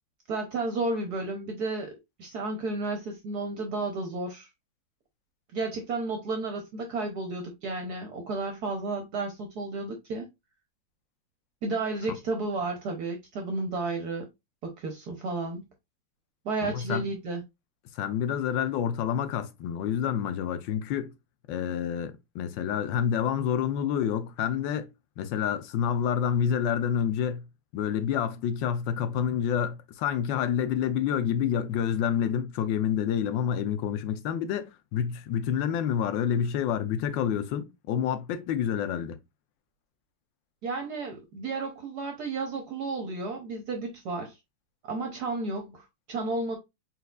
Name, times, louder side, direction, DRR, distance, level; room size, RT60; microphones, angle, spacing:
voice 1, 0.3-4.5 5.5-10.3 11.6-14.3 14.6-15.6 16.4-17.4 40.6-44.4 44.9-46.6, right 3 dB, 65° right, 1.1 m, -32 dB
voice 2, 16.6-17.0 17.9-21.1 21.5-24.9 25.2-27.4 27.7-39.2, left 8 dB, 75° left, 1.3 m, -28 dB
4.1 x 4.0 x 2.3 m
omnidirectional pair, 2.2 m